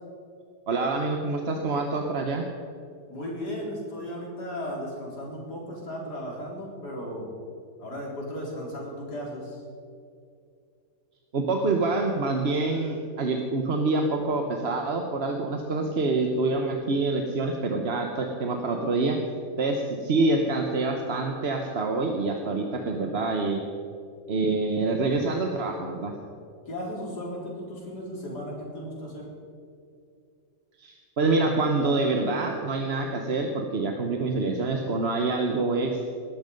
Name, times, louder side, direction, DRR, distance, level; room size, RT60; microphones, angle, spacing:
voice 1, 0.7-2.4 11.3-19.2 19.6-23.6 24.3-26.1 30.8-36.1, right 3 dB, 40° right, 3 dB, 1.2 m, -26 dB
voice 2, 3.1-7.3 7.8-9.6 26.7-29.3, equal, 70° left, -3 dB, 4.3 m, -35 dB
19.5 x 12.0 x 5.3 m, 2.4 s
omnidirectional pair, 1.8 m